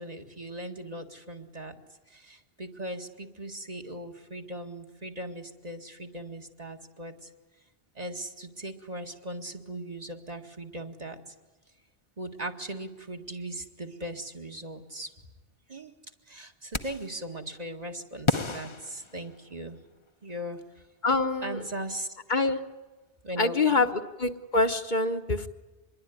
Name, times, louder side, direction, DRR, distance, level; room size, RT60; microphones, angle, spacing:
voice 1, 0.0-1.8 2.1-7.3 8.0-11.3 12.2-15.1 15.7-15.9 16.3-19.8 20.2-20.6 21.4-22.2 23.2-23.9, right 1 dB, 40° right, 4 dB, 2.2 m, -39 dB
sound 1, 16.7-17.2 18.3-19.8, left 3 dB, 30° left, 1.0 m, -31 dB
voice 2, 21.0-21.6 22.3-22.6 23.4-23.9 24.2-25.5, left 3 dB, 50° left, 7 dB, 1.3 m, -25 dB
26.0 x 22.0 x 9.6 m, 1.2 s
omnidirectional pair, 1.1 m